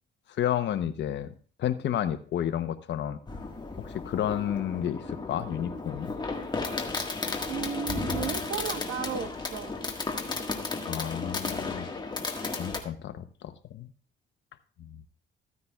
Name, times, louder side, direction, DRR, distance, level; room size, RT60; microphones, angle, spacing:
voice 1, 0.4-1.3 1.6-3.2 3.8-6.1 10.9-11.9 12.6-13.9 14.8-15.0, left 10 dB, 65° left, 11 dB, 0.9 m, -31 dB
Fireworks, 3.3-12.8, left 3 dB, 20° left, 1.6 m, -34 dB
voice 2, 7.5-9.7, right 7 dB, 80° right, 7 dB, 1.3 m, -34 dB
14.5 x 9.6 x 2.4 m, 0.41 s
cardioid pair, 90°, 20 cm